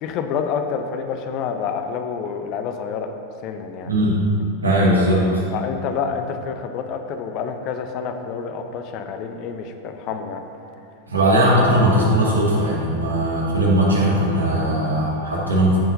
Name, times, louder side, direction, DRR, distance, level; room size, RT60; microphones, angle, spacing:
voice 1, 0.0-3.1 3.4-3.9 5.5-10.4, left 6 dB, 40° left, 6 dB, 0.6 m, -28 dB
voice 2, 3.9-4.2 4.6-5.4 11.1-15.8, right 1 dB, 75° right, -5 dB, 1.9 m, -18 dB
14.0 x 5.7 x 2.7 m, 2.8 s
figure-of-eight pair, 90°, 0 cm